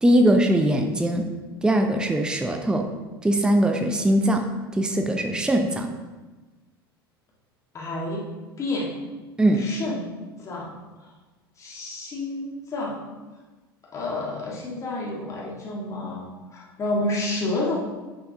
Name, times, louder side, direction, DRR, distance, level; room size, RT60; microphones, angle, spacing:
voice 1, 0.0-1.3 1.6-2.9 3.2-4.5 4.8-5.9 9.4-9.6, right 1 dB, 5° right, 5 dB, 0.6 m, -21 dB
voice 2, 7.7-8.3 8.6-8.9 9.6-10.1 10.4-10.7 11.6-13.0 13.9-16.3 16.5-17.7, left 2 dB, 25° left, -3 dB, 1.6 m, -29 dB
9.4 x 5.6 x 2.7 m, 1.2 s
figure-of-eight pair, 75°, 12 cm